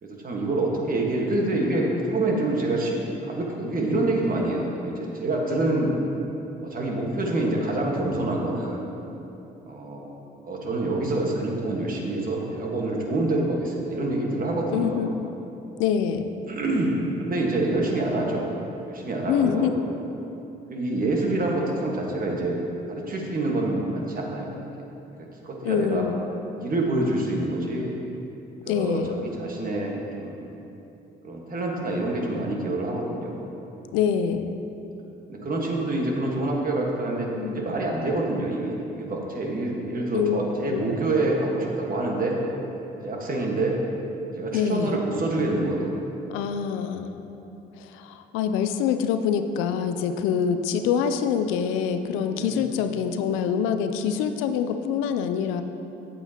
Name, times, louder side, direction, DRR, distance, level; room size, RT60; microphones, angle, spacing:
voice 1, 0.0-5.9 6.6-8.9 9.6-10.1 10.4-15.1 16.5-18.4 18.9-19.7 20.7-22.6 22.9-24.6 25.4-26.0 26.6-27.9 28.6-30.4 31.2-33.4 35.3-42.4 43.0-43.8 44.4-46.0 52.3-52.6, right 2 dB, 45° right, -1 dB, 1.5 m, -26 dB
voice 2, 14.7-15.1 15.8-16.3 19.3-19.7 25.6-26.3 28.7-29.2 33.9-34.6 37.3-37.7 40.1-40.4 40.7-40.9 44.5-45.0 46.3-47.2 47.8-55.6, left 7 dB, 85° left, 9 dB, 0.5 m, -25 dB
8.7 x 8.1 x 2.9 m, 3.0 s
supercardioid pair, 65°, 20 cm